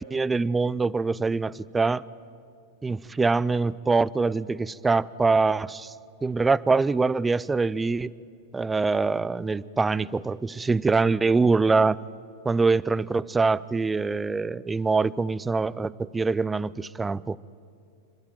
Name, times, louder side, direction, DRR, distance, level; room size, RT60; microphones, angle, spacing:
voice 1, 0.0-2.0 2.8-5.9 6.2-8.1 8.5-12.0 12.4-17.4, right 4 dB, 15° right, 20 dB, 0.5 m, -24 dB
27.5 x 12.5 x 9.1 m, 2.3 s
hypercardioid pair, 105°, 0 cm